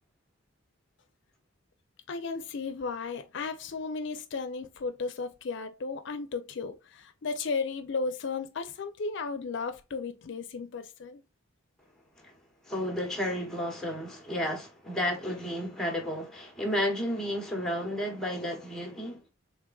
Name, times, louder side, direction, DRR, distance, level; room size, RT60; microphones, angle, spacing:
voice 1, 2.1-11.2, left 4 dB, 65° left, 0.5 m, -34 dB
voice 2, 12.6-19.3, equal, 5° left, 0.9 m, -32 dB
3.5 x 3.3 x 2.3 m
head